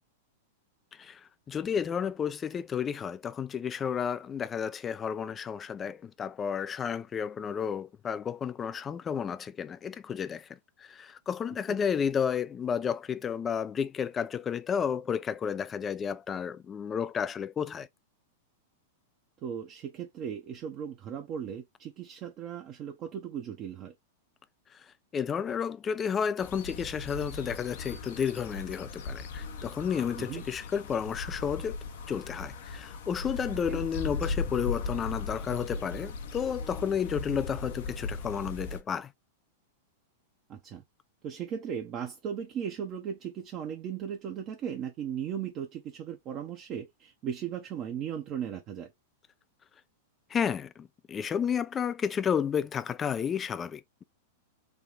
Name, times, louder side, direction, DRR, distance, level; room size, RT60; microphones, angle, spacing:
voice 1, 0.9-10.5 10.8-17.9 24.7-24.9 25.1-31.8 32.1-39.1 50.3-54.0, left 7 dB, 25° left, 0.4 m, -32 dB
voice 2, 19.4-23.9 30.2-30.4 33.7-33.8 40.5-40.8 41.2-48.9, right 8 dB, 40° right, 0.7 m, -37 dB
sound 1, 26.4-38.8, left 4 dB, 65° left, 0.8 m, -38 dB
3.5 x 2.3 x 3.8 m
hypercardioid pair, 105°, 0 cm